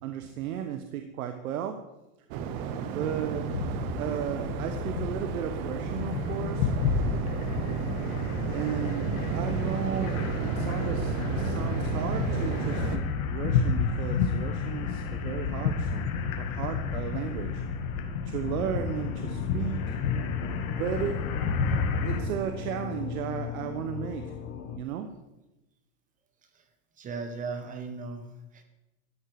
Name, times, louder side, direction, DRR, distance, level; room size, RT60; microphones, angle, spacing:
voice 1, 0.0-1.9 2.9-3.5 4.0-6.7 8.5-17.6 18.2-20.0 20.7-21.3 22.0-24.4 24.7-25.1, right 9 dB, 85° right, 7 dB, 1.3 m, -34 dB
Waves surf, 2.3-13.0, right 7 dB, 45° right, 1.0 m, -32 dB
sound 1, 3.1-22.2, left 5 dB, 70° left, 2.2 m, -31 dB
sound 2, 18.4-24.8, left 8 dB, 20° left, 0.7 m, -38 dB
voice 2, 27.0-28.6, right 4 dB, 20° right, 8 dB, 1.3 m, -38 dB
13.0 x 11.0 x 4.8 m, 0.98 s
supercardioid pair, 160°, 42 cm